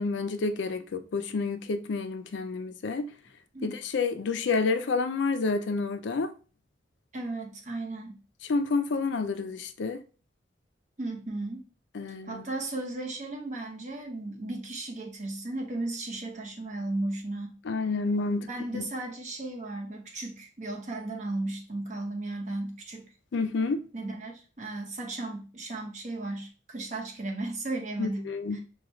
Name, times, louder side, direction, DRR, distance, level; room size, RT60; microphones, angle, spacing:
voice 1, 0.0-3.1 3.6-6.3 8.5-10.0 11.9-12.4 17.7-18.5 18.7-18.9 23.3-23.8 28.0-28.6, left 4 dB, 80° left, 0.4 m, -29 dB
voice 2, 7.1-8.2 11.0-11.7 12.3-17.5 18.5-23.1 23.9-28.6, right 2 dB, 40° right, 0.9 m, -35 dB
4.9 x 2.3 x 3.0 m
head